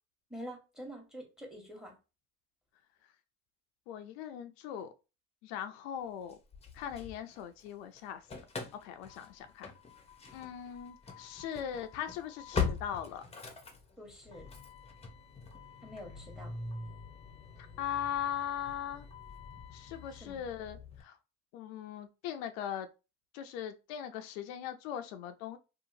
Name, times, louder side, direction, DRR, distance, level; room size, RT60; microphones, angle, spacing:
voice 1, 0.3-1.9 14.0-14.5 15.8-16.6 20.2-20.5, equal, ahead, 1.2 m, -46 dB
voice 2, 3.9-4.9 5.4-6.4 6.7-8.2 8.8-9.7 10.3-13.2 17.8-19.1 19.7-21.2 21.5-22.9 23.3-25.6, left 9 dB, 80° left, 0.5 m, -39 dB
Engine starting / Slam, 6.3-7.7 8.0-21.0, left 5 dB, 20° left, 0.7 m, -42 dB
2.8 x 2.4 x 2.6 m
supercardioid pair, 80°, 31 cm